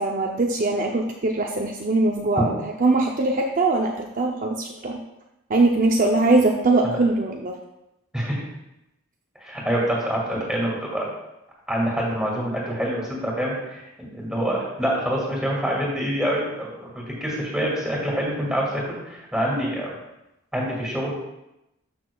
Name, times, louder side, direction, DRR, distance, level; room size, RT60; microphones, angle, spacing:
voice 1, 0.0-2.5 2.8-5.0 5.5-7.5 19.6-19.8, right 2 dB, 40° right, 0 dB, 0.6 m, -21 dB
voice 2, 9.4-11.0 11.7-19.9 20.5-21.1, equal, 5° right, -4 dB, 2.4 m, -26 dB
12.5 x 6.0 x 2.3 m, 0.90 s
head